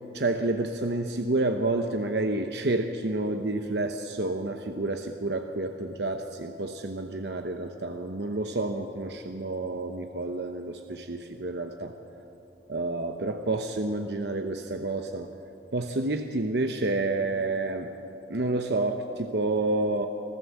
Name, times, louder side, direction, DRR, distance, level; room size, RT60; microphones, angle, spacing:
voice 1, 0.1-11.9 12.7-15.3 15.7-17.9 18.3-20.1, right 2 dB, 65° right, 6 dB, 0.9 m, -29 dB
25.0 x 15.0 x 7.2 m, 2.9 s
head